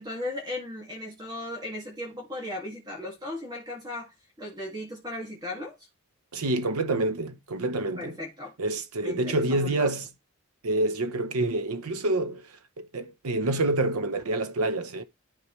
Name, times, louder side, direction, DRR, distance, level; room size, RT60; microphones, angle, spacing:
voice 1, 0.0-5.8 8.0-8.6 9.0-9.9, left 1 dB, 20° right, 2.0 m, -37 dB
voice 2, 6.3-8.2 8.6-10.1 10.6-15.0, right 2 dB, 90° right, 0.8 m, -27 dB
11.5 x 4.7 x 3.2 m
head